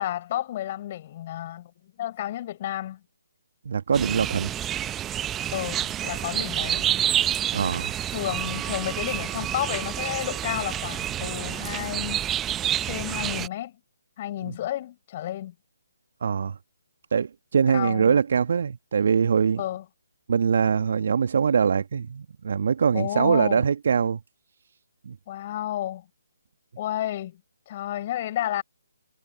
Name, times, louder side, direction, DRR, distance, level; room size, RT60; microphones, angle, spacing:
voice 1, 0.0-1.7 2.0-3.0 5.5-6.9 8.1-12.3 12.8-13.8 14.2-15.5 17.7-18.2 19.6-19.8 22.9-23.6 25.3-26.1 26.8-27.4 27.7-28.6, left 13 dB, 35° left, 5.9 m, -31 dB
voice 2, 3.6-4.5 7.5-7.9 14.5-14.6 16.2-16.6 17.1-19.6 20.3-24.2 25.0-25.2, right 6 dB, 50° right, 1.3 m, -23 dB
sound 1, 3.9-13.5, right 11 dB, 10° right, 0.9 m, -28 dB
figure-of-eight pair, 140°, 0 cm